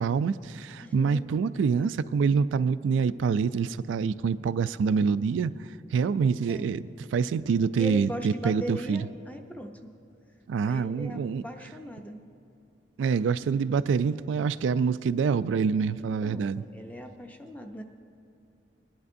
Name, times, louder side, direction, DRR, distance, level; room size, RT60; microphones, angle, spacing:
voice 1, 0.0-5.5 5.9-6.8 7.1-9.0 10.5-11.4 13.0-16.6, right 5 dB, 85° right, 14 dB, 0.3 m, -26 dB
voice 2, 0.8-1.2 6.5-6.7 7.8-9.9 10.6-12.2 16.2-17.8, equal, 10° left, 4 dB, 0.6 m, -39 dB
21.0 x 11.0 x 2.6 m, 2.8 s
head